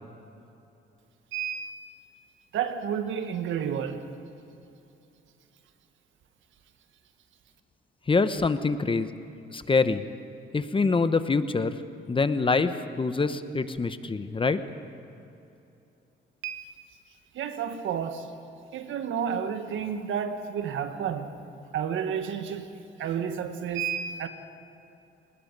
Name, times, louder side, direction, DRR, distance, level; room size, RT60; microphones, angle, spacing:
voice 1, 1.3-1.7 2.5-4.0 16.4-16.7 17.3-18.3 18.7-21.3 21.7-22.7 23.0-24.3, right 8 dB, 75° right, 1.7 m, -31 dB
voice 2, 8.1-9.1 9.5-10.0 10.5-11.8 12.1-14.6, left 4 dB, 25° left, 1.0 m, -25 dB
29.5 x 19.5 x 5.4 m
cardioid pair, 90°, 20 cm